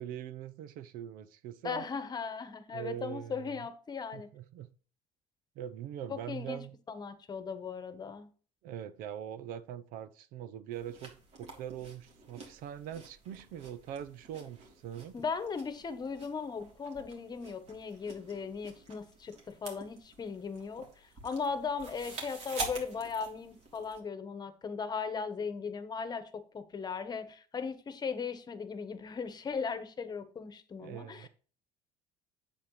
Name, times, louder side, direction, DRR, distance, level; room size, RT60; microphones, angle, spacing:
voice 1, 0.0-1.8 2.7-3.6 4.1-4.7 5.6-6.7 8.6-15.2 30.8-31.3, right 10 dB, 70° right, 0.7 m, -42 dB
voice 2, 1.6-4.3 6.1-8.3 15.1-31.3, left 5 dB, 30° left, 1.2 m, -38 dB
sound 1, 10.7-24.0, right 3 dB, 50° right, 3.2 m, -47 dB
8.7 x 7.4 x 3.2 m
cardioid pair, 115°, 15 cm